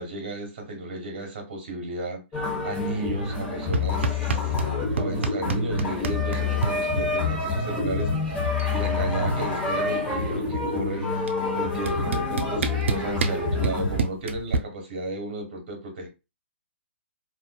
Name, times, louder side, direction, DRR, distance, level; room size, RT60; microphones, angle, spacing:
voice 1, 0.0-2.2 2.6-8.4 8.7-11.1 11.5-16.1, right 2 dB, 50° right, 1.1 m, -33 dB
sound 1, 2.3-14.0, left 3 dB, 10° left, 1.0 m, -27 dB
sound 2, 3.7-4.7 5.0-6.7 8.0-8.1 8.3-8.8 9.0-10.4 11.3-11.4 11.9-14.6, right 4 dB, 70° right, 0.4 m, -28 dB
2.4 x 2.3 x 2.2 m
hypercardioid pair, 150°, 7 cm